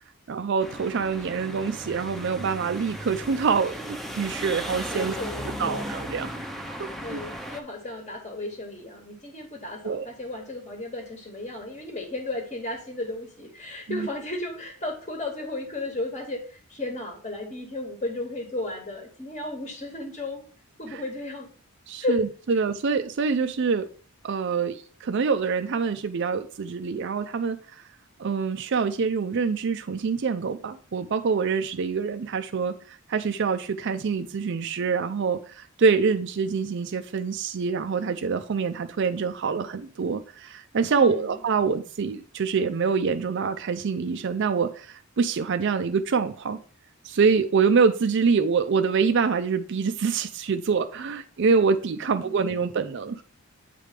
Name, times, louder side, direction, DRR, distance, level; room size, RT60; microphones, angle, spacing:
voice 1, 0.3-5.1 5.6-6.3 6.6-7.2 9.8-10.1 13.9-14.1 20.9-21.0 21.9-23.9 24.2-27.8 28.2-46.6 47.0-53.2, right 5 dB, 55° right, 0.4 m, -25 dB
sound 1, 0.6-7.6, equal, ahead, 0.6 m, -36 dB
voice 2, 4.9-5.9 7.0-20.4 20.8-21.5 22.0-22.2 41.0-41.4 52.1-52.4, left 2 dB, 30° left, 1.1 m, -34 dB
8.4 x 3.3 x 5.0 m
head